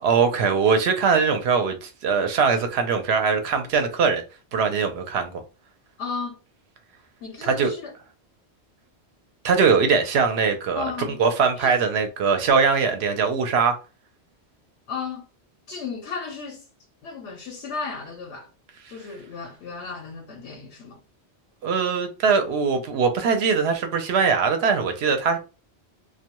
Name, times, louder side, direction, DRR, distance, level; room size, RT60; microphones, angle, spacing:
voice 1, 0.0-4.2 4.5-5.4 7.4-7.7 9.4-10.9 11.2-13.8 21.6-25.4, right 5 dB, 75° right, 0.8 m, -21 dB
voice 2, 6.0-6.4 7.2-7.9 10.7-11.2 11.6-11.7 14.9-15.3 15.7-16.6 17.0-18.5 18.9-21.0, left 5 dB, 85° left, 0.9 m, -34 dB
2.3 x 2.2 x 2.9 m
omnidirectional pair, 1.1 m